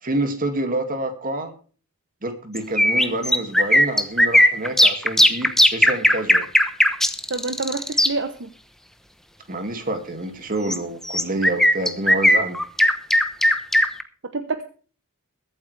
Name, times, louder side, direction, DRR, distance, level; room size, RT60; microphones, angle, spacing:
voice 1, 0.0-1.5 2.2-6.4 9.5-12.6, right 1 dB, 40° right, 6 dB, 2.3 m, -27 dB
sound 1, 2.6-8.1 10.7-10.8 11.1-14.0, equal, ahead, 1.0 m, -16 dB
voice 2, 7.3-8.5 14.3-14.7, right 3 dB, 60° right, 7 dB, 1.1 m, -27 dB
22.0 x 8.8 x 3.4 m, 0.40 s
head